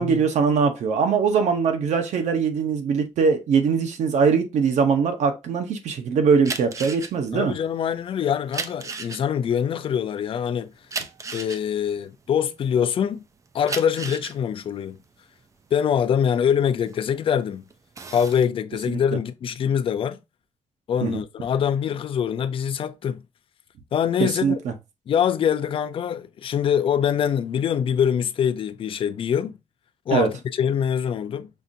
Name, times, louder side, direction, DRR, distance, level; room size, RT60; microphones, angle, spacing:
voice 1, 0.0-7.5 21.0-21.2 24.2-24.7 30.1-30.3, right 5 dB, 90° right, 0.9 m, -21 dB
sound 1, 6.4-13.0 13.5-17.3 17.7-18.4, right 4 dB, 25° right, 0.4 m, -35 dB
voice 2, 7.3-10.7 11.3-13.2 13.5-15.0 15.7-17.6 18.1-20.2 20.9-23.2 23.9-24.6 25.1-29.6 30.1-31.5, left 8 dB, 50° left, 0.4 m, -24 dB
5.6 x 2.5 x 2.6 m
wide cardioid pair, 165°, 12 cm